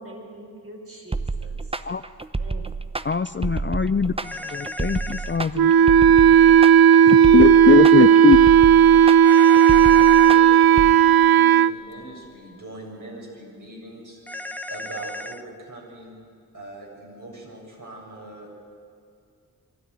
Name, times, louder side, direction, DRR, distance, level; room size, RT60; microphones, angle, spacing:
voice 1, 0.0-1.7 2.4-2.7, right 1 dB, 35° right, 1 dB, 5.4 m, -43 dB
sound 1, 1.1-10.9, right 3 dB, 15° right, 0.8 m, -29 dB
voice 2, 3.0-5.7 7.1-8.4, left 6 dB, 30° left, 13 dB, 0.5 m, -21 dB
sound 2, 4.2-5.4 9.2-10.4 14.3-15.4, left 2 dB, 5° left, 1.0 m, -35 dB
Wind instrument woodwind instrument, 5.5-11.7, right 9 dB, 70° right, 0.6 m, -13 dB
voice 3, 7.6-8.9 10.1-14.2 14.7-16.1 16.5-18.6, right 2 dB, 55° right, -2 dB, 7.4 m, -41 dB
24.0 x 13.0 x 9.5 m, 2.3 s
cardioid pair, 45°, 38 cm